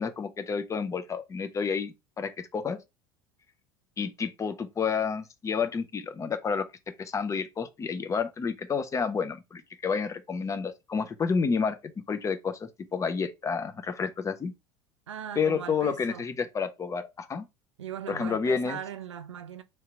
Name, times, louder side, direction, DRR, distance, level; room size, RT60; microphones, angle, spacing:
voice 1, 0.0-2.8 4.0-11.8 12.1-14.5 15.4-17.5 18.1-18.8, left 5 dB, 20° left, 0.5 m, -30 dB
voice 2, 15.1-16.3 17.8-19.6, right 9 dB, 75° right, 0.5 m, -39 dB
3.2 x 2.8 x 4.4 m
figure-of-eight pair, 70°, 15 cm